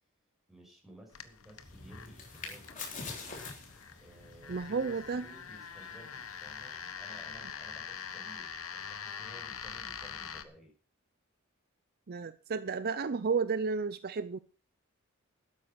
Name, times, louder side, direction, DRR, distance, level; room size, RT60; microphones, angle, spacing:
voice 1, 0.5-3.2 4.0-10.7, right 1 dB, ahead, 6.4 m, -55 dB
sound 1, 1.1-10.4, left 7 dB, 85° left, 1.2 m, -44 dB
sound 2, 1.6-7.3, left 4 dB, 40° left, 3.8 m, -47 dB
voice 2, 4.5-5.2 12.1-14.4, right 5 dB, 45° right, 0.5 m, -32 dB
13.0 x 9.7 x 5.9 m
head